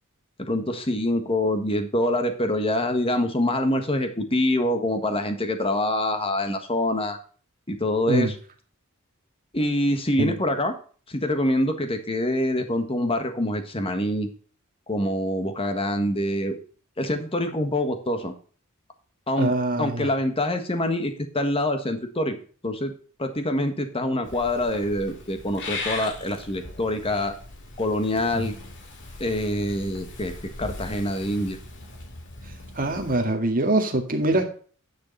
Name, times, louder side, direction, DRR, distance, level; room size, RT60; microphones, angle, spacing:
voice 1, 0.4-7.2 7.7-8.3 9.5-10.7 11.1-14.3 14.9-16.6 17.0-18.3 19.3-19.5 19.8-22.3 22.6-22.9 23.2-27.3 27.8-28.5 29.2-30.3 30.6-31.6, left 1 dB, 25° left, 7 dB, 1.5 m, -25 dB
voice 2, 19.4-20.1 28.3-28.5 32.8-34.5, right 2 dB, 40° right, 4 dB, 2.1 m, -24 dB
Purr / Meow, 24.2-33.2, left 3 dB, 60° left, 2.4 m, -39 dB
10.5 x 6.7 x 4.0 m, 0.41 s
head